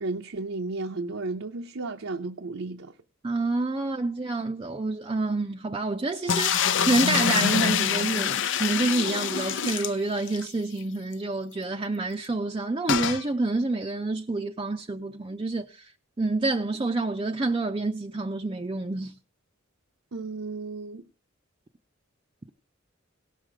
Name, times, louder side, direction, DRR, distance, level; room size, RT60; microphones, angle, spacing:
voice 1, 0.0-2.9 20.1-21.0, right 3 dB, 85° right, 0.7 m, -33 dB
voice 2, 3.2-15.9 16.2-19.1, right 2 dB, 25° right, 0.5 m, -28 dB
sound 1, 6.3-10.5 10.8-10.9 11.1-11.2 12.9-13.2, left 8 dB, 65° left, 0.6 m, -25 dB
17.5 x 6.5 x 4.9 m
head